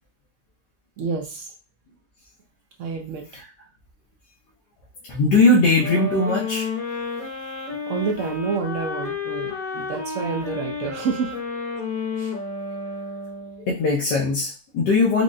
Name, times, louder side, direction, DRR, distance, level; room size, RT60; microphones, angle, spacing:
voice 1, 1.0-1.5 2.8-3.3 7.9-11.3 12.2-12.3, right 5 dB, 70° right, 2 dB, 0.7 m, -28 dB
voice 2, 5.1-6.7 13.6-15.2, left 2 dB, 85° left, -2 dB, 1.3 m, -20 dB
sound 1, 5.8-13.8, left 4 dB, 60° left, 1.2 m, -31 dB
4.8 x 2.1 x 2.5 m, 0.33 s
omnidirectional pair, 1.8 m